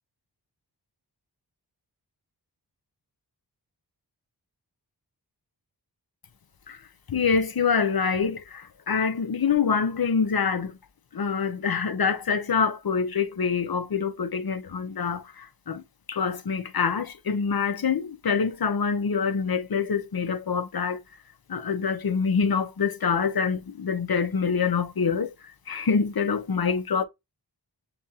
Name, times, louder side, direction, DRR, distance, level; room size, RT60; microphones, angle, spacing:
voice 1, 7.1-10.7 11.1-15.8 16.1-21.0 21.5-25.3 25.7-27.0, left 6 dB, 55° left, 0.9 m, -25 dB
7.0 x 2.4 x 2.8 m
cardioid pair, 45°, 43 cm